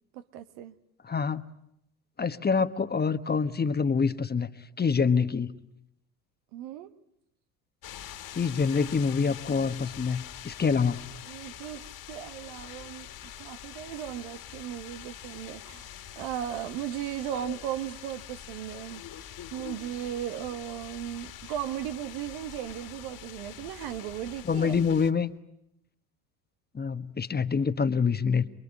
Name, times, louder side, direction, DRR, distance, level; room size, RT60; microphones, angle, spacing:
voice 1, 0.1-0.8 6.5-6.9 11.3-19.0 19.5-24.8, right 11 dB, 70° right, 1.7 m, -37 dB
voice 2, 1.0-1.4 2.2-4.5 4.8-5.5 8.3-11.1 24.4-25.3 26.7-28.5, left 5 dB, 20° left, 1.4 m, -26 dB
sound 1, 7.8-25.1, left 11 dB, 50° left, 2.5 m, -44 dB
28.0 x 22.0 x 9.9 m
hypercardioid pair, 85°, 47 cm